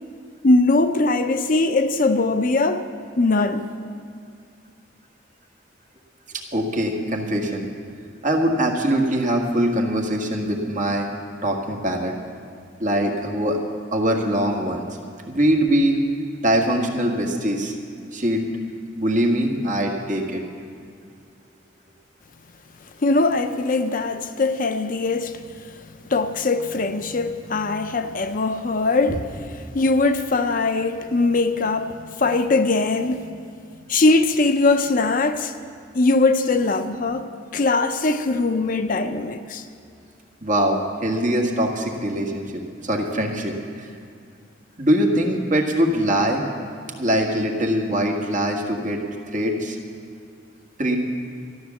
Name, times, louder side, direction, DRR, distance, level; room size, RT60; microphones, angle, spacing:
voice 1, 0.4-2.9 3.2-3.7 23.0-25.4 25.7-25.8 26.1-33.3 33.9-35.5 35.9-39.7, left 3 dB, 45° left, 0.5 m, -21 dB
voice 2, 6.3-7.7 8.2-11.1 11.4-12.1 12.8-13.6 13.9-14.9 15.2-16.0 16.4-17.7 18.1-18.4 19.0-20.4 40.4-43.9 44.8-46.4 47.0-49.0 49.3-49.8 50.8-51.0, right 1 dB, 40° right, 1.7 m, -22 dB
13.0 x 11.5 x 7.1 m
head